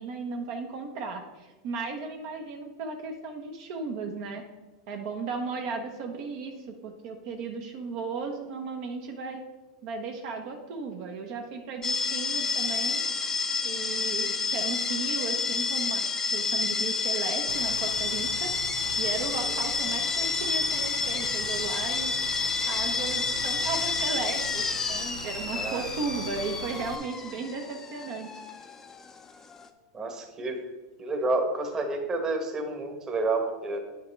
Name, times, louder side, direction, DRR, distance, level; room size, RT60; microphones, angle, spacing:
voice 1, 0.0-4.4 4.9-9.4 9.8-13.0 13.6-18.5 18.8-28.3, right 4 dB, 55° right, 3 dB, 1.0 m, -35 dB
sound 1, 11.8-29.7, left 4 dB, 20° left, 0.6 m, -29 dB
sound 2, 17.5-27.0, right 7 dB, 85° right, 0.6 m, -42 dB
voice 2, 25.5-25.8 29.9-30.6 31.0-33.8, right 2 dB, 25° right, 4 dB, 1.2 m, -29 dB
9.4 x 5.6 x 3.3 m, 1.1 s
supercardioid pair, 125°, 2 cm